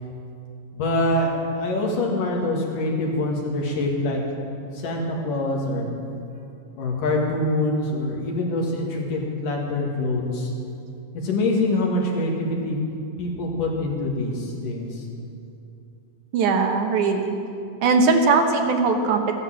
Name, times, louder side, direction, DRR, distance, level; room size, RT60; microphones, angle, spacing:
voice 1, 0.7-4.2 4.7-5.9 6.8-10.5 11.1-12.8 13.2-15.1, left 2 dB, 70° left, -1 dB, 3.5 m, -25 dB
voice 2, 16.3-17.3 17.8-19.3, right 4 dB, 70° right, 4 dB, 2.3 m, -20 dB
15.0 x 11.0 x 7.5 m, 2.6 s
omnidirectional pair, 3.9 m